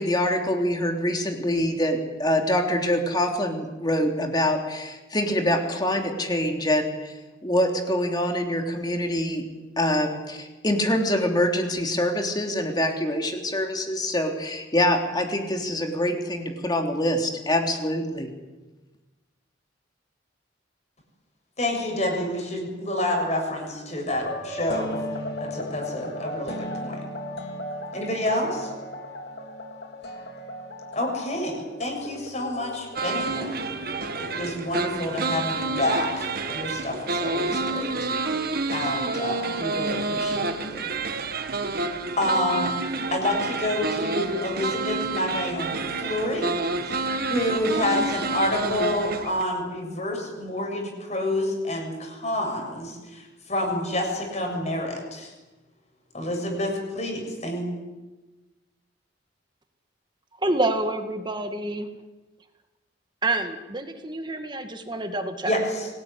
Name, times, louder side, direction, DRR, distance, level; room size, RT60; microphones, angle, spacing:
voice 1, 0.0-7.2 7.4-9.4 9.8-18.3, left 1 dB, 20° left, 3 dB, 3.3 m, -25 dB
voice 2, 21.6-27.0 27.9-28.7 30.9-33.6 34.2-36.3 36.5-38.0 38.7-40.9 42.2-42.8 43.1-46.6 46.8-55.3 56.1-57.6 65.4-65.9, left 1 dB, 35° left, 2 dB, 7.2 m, -28 dB
sound 1, 24.1-39.1, equal, 60° left, 3.6 m, -38 dB
sound 2, 33.0-49.4, right 3 dB, 50° right, 1.6 m, -29 dB
voice 3, 60.4-61.9 63.2-65.6, right 2 dB, 25° right, 7 dB, 2.0 m, -27 dB
25.5 x 19.0 x 9.9 m, 1.2 s
head